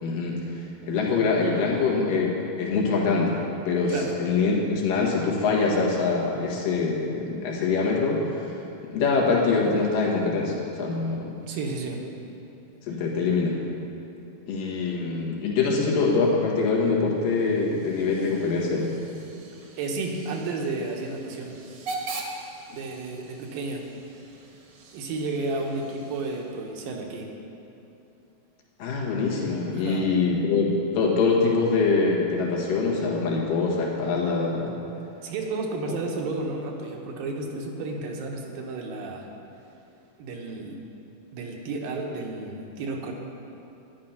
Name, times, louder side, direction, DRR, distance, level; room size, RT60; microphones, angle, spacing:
voice 1, 0.0-2.3 2.6-8.6 8.9-11.3 12.9-13.6 14.5-18.9 28.8-34.8 35.9-36.0, left 4 dB, 75° left, -2 dB, 3.3 m, -24 dB
voice 2, 11.5-12.0 19.8-21.6 22.7-23.9 24.9-27.3 29.7-30.1 35.2-39.3 40.2-40.8 41.3-43.1, right 3 dB, 80° right, 1 dB, 3.0 m, -32 dB
Hiss / Train / Alarm, 17.1-26.8, right 3 dB, 55° right, 1.7 m, -42 dB
12.5 x 10.5 x 5.8 m, 2.9 s
omnidirectional pair, 4.0 m